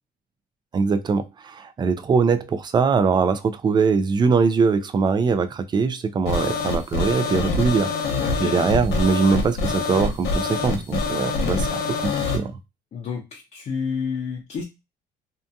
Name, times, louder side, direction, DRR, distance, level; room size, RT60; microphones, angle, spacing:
voice 1, 0.7-7.9 8.4-12.5, right 5 dB, 25° right, 0.3 m, -22 dB
sound 1, 6.2-12.4, left 3 dB, 75° left, 0.8 m, -25 dB
voice 2, 8.2-8.6 12.9-14.6, left 6 dB, 40° left, 0.6 m, -30 dB
2.7 x 2.5 x 2.2 m
cardioid pair, 110°, 17 cm